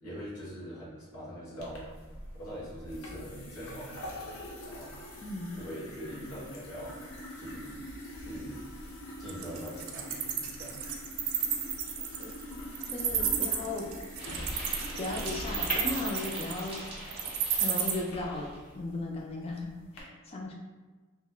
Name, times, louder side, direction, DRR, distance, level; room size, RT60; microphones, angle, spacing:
voice 1, 0.0-1.9 2.3-4.2 4.6-4.9 5.5-7.1 7.4-7.8 8.1-8.6 9.2-10.8, equal, 85° left, -9 dB, 1.3 m, -42 dB
sound 1, 1.6-20.0, left 1 dB, 70° left, 0.6 m, -43 dB
Wild animals, 9.3-17.9, right 9 dB, 65° right, 0.3 m, -31 dB
voice 2, 12.9-13.9 15.0-16.9 17.5-18.5 18.7-20.5, left 2 dB, 25° left, -1 dB, 0.3 m, -36 dB
sound 2, 14.2-18.7, right 1 dB, 25° right, 0.7 m, -43 dB
2.8 x 2.4 x 2.2 m, 1.3 s
head